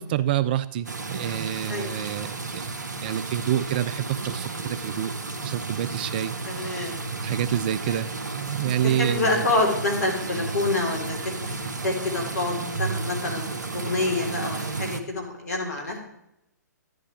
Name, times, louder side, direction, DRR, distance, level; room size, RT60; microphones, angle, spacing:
voice 1, 0.0-2.7 3.0-5.1 5.4-6.9 7.1-9.5, right 11 dB, 30° right, 16 dB, 0.3 m, -28 dB
sound 1, 0.8-15.0, right 3 dB, 70° right, 1.0 m, -33 dB
voice 2, 6.4-7.0 7.9-8.0 8.8-15.9, left 2 dB, 60° left, 1 dB, 3.3 m, -27 dB
11.0 x 11.0 x 3.2 m, 0.82 s
figure-of-eight pair, 125°, 10 cm